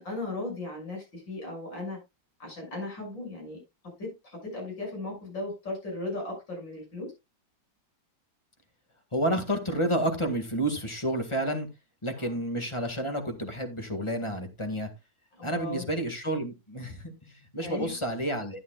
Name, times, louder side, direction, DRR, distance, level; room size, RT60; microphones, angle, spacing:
voice 1, 0.0-2.0 2.4-3.6 4.0-7.1 12.2-12.4 15.4-15.8 17.6-18.0, left 2 dB, 60° left, 0 dB, 7.3 m, -37 dB
voice 2, 9.1-11.7 12.0-14.9 15.4-18.6, right 1 dB, 15° left, 6 dB, 1.6 m, -30 dB
12.5 x 9.9 x 2.3 m, 0.23 s
omnidirectional pair, 2.2 m